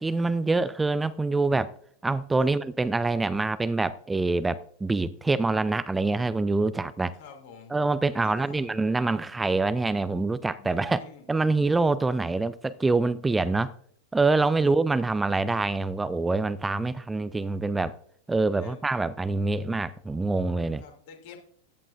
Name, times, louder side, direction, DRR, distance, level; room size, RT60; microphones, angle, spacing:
voice 1, 0.0-1.7 2.0-7.1 7.7-11.0 11.3-13.7 14.1-18.0 18.3-20.8, right 3 dB, 10° right, 0.4 m, -25 dB
voice 2, 7.1-7.7 8.1-8.7 10.5-11.3 14.6-14.8 18.6-18.8 20.8-21.4, left 5 dB, 50° left, 2.7 m, -48 dB
15.0 x 11.0 x 2.6 m
figure-of-eight pair, 90°, 0 cm